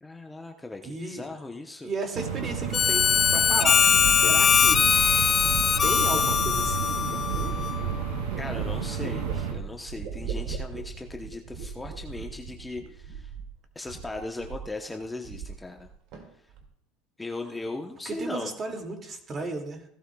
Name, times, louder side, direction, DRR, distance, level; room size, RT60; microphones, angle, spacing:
voice 1, 0.0-1.9 8.4-13.3 13.7-15.9 17.2-18.5, left 2 dB, 10° left, 3 dB, 0.9 m, -38 dB
voice 2, 0.8-1.3 1.8-4.9 5.8-7.7 18.1-19.8, right 3 dB, 35° right, 3 dB, 2.3 m, -35 dB
sound 1, 2.1-9.5, right 6 dB, 85° right, 2.7 m, -32 dB
Harmonica, 2.7-7.9, left 7 dB, 35° left, 0.4 m, -22 dB
sound 2, 3.9-13.6 13.9-14.7 15.0-15.9 16.1-16.6, right 6 dB, 65° right, 2.2 m, -37 dB
16.0 x 12.0 x 2.3 m, 0.74 s
supercardioid pair, 95°, 0 cm